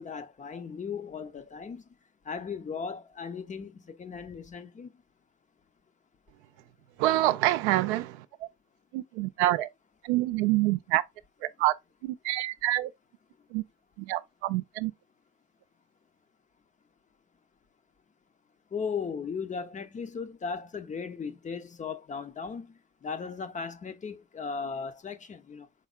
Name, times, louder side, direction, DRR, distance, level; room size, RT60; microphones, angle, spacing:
voice 1, 0.0-1.8 2.3-4.9 18.7-22.7 23.0-25.7, left 5 dB, 20° left, 0.5 m, -37 dB
voice 2, 7.0-8.3 8.9-9.7 10.0-11.0 11.4-11.7 12.0-12.9 13.5-13.6 14.0-14.9, right 16 dB, 70° right, 0.5 m, -26 dB
4.3 x 3.5 x 2.4 m
hypercardioid pair, 70°, 35 cm